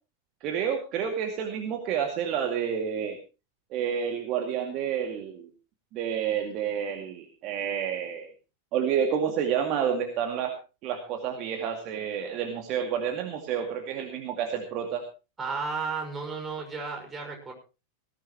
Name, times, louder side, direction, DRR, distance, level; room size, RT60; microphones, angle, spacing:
voice 1, 0.4-3.2 3.7-5.5 5.9-8.3 8.7-10.5 10.8-15.0, right 8 dB, 40° right, 4 dB, 2.2 m, -29 dB
voice 2, 15.4-17.5, right 4 dB, 15° right, 1 dB, 5.6 m, -33 dB
19.0 x 15.5 x 3.0 m, 0.31 s
figure-of-eight pair, 90°, 0 cm